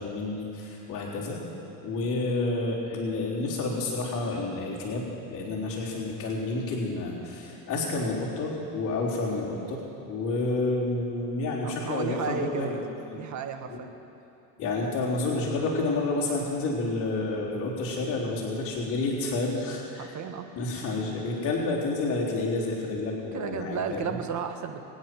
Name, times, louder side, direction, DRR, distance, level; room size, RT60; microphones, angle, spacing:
voice 1, 0.0-1.4 1.8-5.0 5.3-12.8 13.1-13.2 13.7-13.8 14.6-20.1 20.6-24.2, left 2 dB, 40° left, -8 dB, 3.8 m, -29 dB
voice 2, 11.6-12.7 13.1-13.9 20.0-20.5 23.3-24.8, right 7 dB, 35° right, 6 dB, 1.5 m, -33 dB
23.0 x 9.5 x 6.1 m, 2.8 s
supercardioid pair, 110°, 47 cm